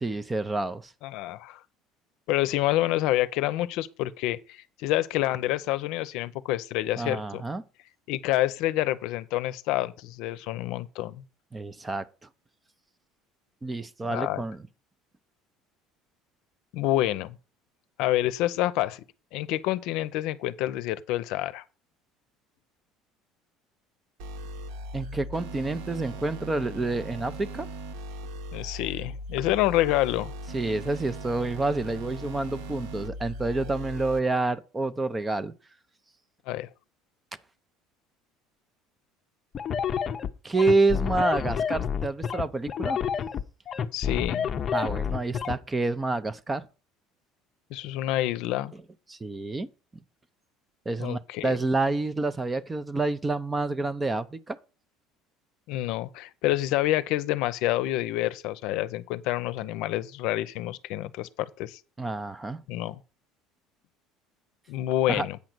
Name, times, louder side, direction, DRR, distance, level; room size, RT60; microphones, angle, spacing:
voice 1, 0.0-0.9 7.0-7.6 11.5-12.0 13.6-14.6 24.9-27.7 30.5-35.5 40.4-43.0 44.7-46.6 49.1-49.7 50.9-54.6 62.0-62.6 65.1-65.3, right 2 dB, 15° right, 0.5 m, -28 dB
voice 2, 1.0-1.6 2.3-7.4 8.1-11.2 14.1-14.4 16.7-17.4 18.0-19.0 19.3-21.6 28.5-30.3 36.5-36.7 43.9-44.5 47.7-48.7 51.0-51.6 55.7-61.8 62.7-63.0 64.7-65.4, left 15 dB, 65° left, 0.6 m, -28 dB
sound 1, 24.2-34.2, right 1 dB, 85° right, 1.2 m, -39 dB
sound 2, 39.5-45.6, left 7 dB, 30° left, 0.6 m, -29 dB
8.5 x 5.2 x 6.0 m
cardioid pair, 155°, 0 cm